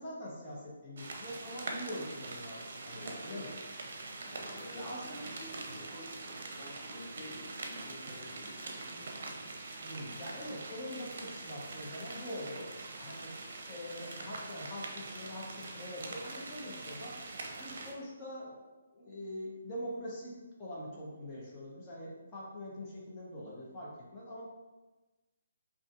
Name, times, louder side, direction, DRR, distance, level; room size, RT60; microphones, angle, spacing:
voice 1, 0.0-3.0 3.2-3.5 4.7-5.3 9.8-12.7 13.0-13.3 13.7-17.1 17.5-18.6 18.9-24.4, equal, 25° left, -6 dB, 1.0 m, -43 dB
sound 1, 1.0-17.9, right 3 dB, 55° right, 0.7 m, -44 dB
voice 2, 2.8-3.5 4.2-9.5, equal, 50° left, -6 dB, 1.4 m, -50 dB
5.1 x 2.8 x 2.5 m, 1.2 s
figure-of-eight pair, 140°, 0 cm